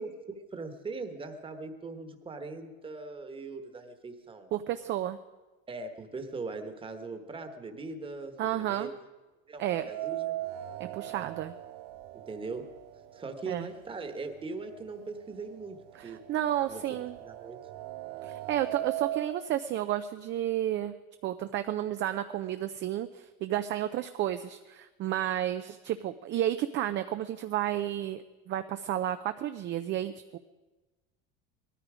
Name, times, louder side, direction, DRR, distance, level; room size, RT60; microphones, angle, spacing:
voice 1, 0.0-4.5 5.7-8.9 9.5-10.4 12.3-12.7 13.1-16.2 16.7-16.8 17.2-17.6, right 3 dB, 15° right, 7 dB, 1.3 m, -40 dB
voice 2, 4.5-5.2 8.4-8.9 9.6-9.8 10.8-11.5 13.5-13.7 15.9-17.2 18.2-20.9 21.2-30.4, right 12 dB, 40° right, 10 dB, 0.5 m, -32 dB
sound 1, 9.6-13.7 14.0-14.1 15.1-15.2 15.6-19.4, right 15 dB, 80° right, 0.9 m, -39 dB
19.5 x 13.5 x 5.0 m, 1.2 s
cardioid pair, 150°, 30 cm